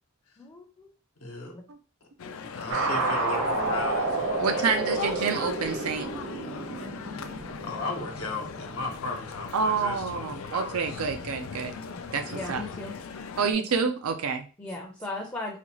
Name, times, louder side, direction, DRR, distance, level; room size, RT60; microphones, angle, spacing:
voice 1, 0.4-0.9 11.7-12.0 12.3-13.0 13.5-13.9 14.6-15.6, left 2 dB, 15° left, -1 dB, 0.5 m, -38 dB
voice 2, 1.2-1.5 2.5-4.7 5.1-5.5 7.6-11.0 11.3-12.8, left 3 dB, 85° left, 1 dB, 0.9 m, -37 dB
Male speech man speaking, 2.2-13.5, left 5 dB, 70° left, 0.4 m, -40 dB
sound 1, 2.7-9.4, right 2 dB, 60° right, 0.9 m, -30 dB
voice 3, 4.4-6.1 9.5-11.7 12.1-12.6 13.4-14.5, right 5 dB, 90° right, 7 dB, 0.5 m, -28 dB
4.1 x 2.3 x 3.0 m, 0.36 s
head